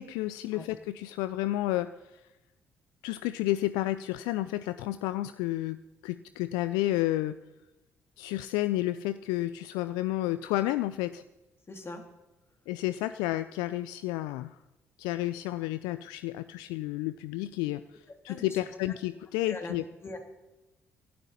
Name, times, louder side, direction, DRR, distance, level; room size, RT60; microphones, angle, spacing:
voice 1, 0.0-2.2 3.0-7.4 8.2-11.2 12.7-14.6 15.0-17.8 18.2-19.8, left 15 dB, 75° left, 14 dB, 0.4 m, -31 dB
voice 2, 11.7-12.0 18.3-18.6 19.5-19.7 20.0-20.2, left 3 dB, 35° left, 4 dB, 2.8 m, -40 dB
18.5 x 12.0 x 4.2 m, 1.0 s
hypercardioid pair, 45°, 7 cm